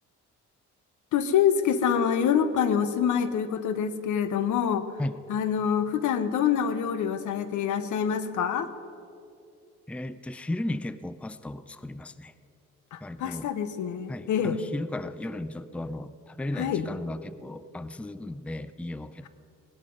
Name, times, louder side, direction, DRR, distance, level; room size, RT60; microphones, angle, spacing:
voice 1, 1.1-4.9 5.3-8.7 12.9-14.6 16.6-16.9, left 8 dB, 75° left, 12 dB, 1.0 m, -26 dB
voice 2, 9.9-12.3 13.0-13.5 14.1-19.3, left 1 dB, 5° left, 14 dB, 0.5 m, -35 dB
18.0 x 11.0 x 5.3 m, 2.5 s
cardioid pair, 90°, 30 cm